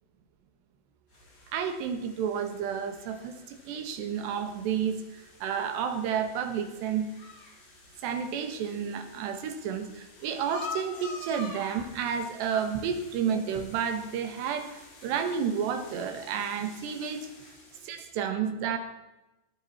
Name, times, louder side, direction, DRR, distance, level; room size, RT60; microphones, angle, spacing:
sound 1, 1.1-18.1, left 3 dB, 50° left, 5.0 m, -48 dB
voice 1, 1.5-7.1 8.0-14.7 15.0-17.2 17.8-18.8, right 7 dB, 65° right, 7 dB, 3.4 m, -31 dB
19.0 x 13.0 x 4.3 m, 0.98 s
omnidirectional pair, 5.7 m